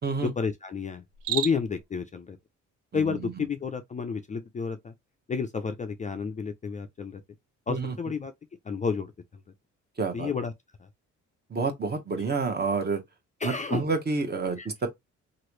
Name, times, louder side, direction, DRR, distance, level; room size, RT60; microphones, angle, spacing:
voice 1, 0.2-2.4 2.9-4.9 5.3-7.2 7.7-8.3 8.6-9.1 10.1-10.5 13.4-13.8 14.6-14.7, left 5 dB, 25° left, 0.4 m, -31 dB
Cricket, 1.1-1.8, right 12 dB, 80° right, 0.5 m, -32 dB
voice 2, 10.0-10.3 11.5-13.0 13.4-14.9, right 4 dB, 35° right, 1.0 m, -29 dB
3.1 x 2.5 x 3.0 m
cardioid pair, 90°, 30 cm